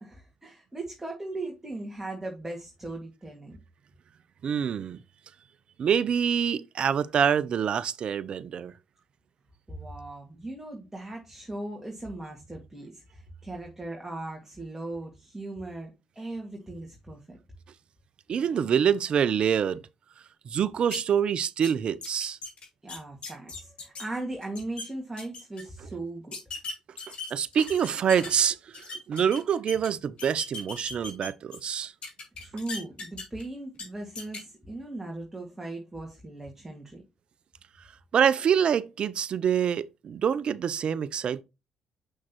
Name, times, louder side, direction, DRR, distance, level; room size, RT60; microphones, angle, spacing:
voice 1, 0.0-3.6 9.7-17.4 22.8-26.4 32.4-37.0, right 2 dB, 10° right, 2.0 m, -38 dB
voice 2, 4.4-5.0 5.8-8.7 18.3-19.8 20.5-22.4 27.3-31.9 38.1-41.4, right 8 dB, 55° right, 0.5 m, -26 dB
sound 1, 20.9-21.0 21.4-21.7 22.0-24.0 24.4-24.9 25.2-25.6 26.3-28.4 28.7-29.9 30.2-31.7 32.0-33.4 33.7-33.8 34.2-34.4, left 3 dB, 55° left, 3.0 m, -38 dB
6.4 x 6.0 x 3.0 m
supercardioid pair, 60°, 2 cm